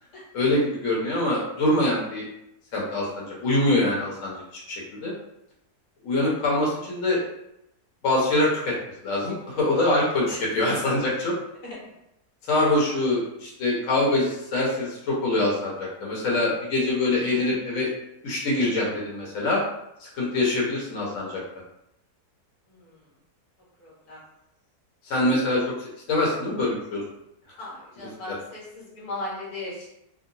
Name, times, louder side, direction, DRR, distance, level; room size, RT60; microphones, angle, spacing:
voice 1, 0.3-2.3 2.7-4.4 4.7-5.1 6.0-7.2 8.0-8.7 9.0-11.3 12.5-17.9 18.2-19.6 20.0-21.4 25.0-25.6 26.1-27.0 28.3-28.4, left 2 dB, 60° left, -5 dB, 1.2 m, -24 dB
voice 2, 22.7-23.0 23.8-24.2 27.6-29.9, left 2 dB, 80° left, -5 dB, 1.6 m, -37 dB
3.7 x 2.2 x 2.6 m, 0.83 s
omnidirectional pair, 1.7 m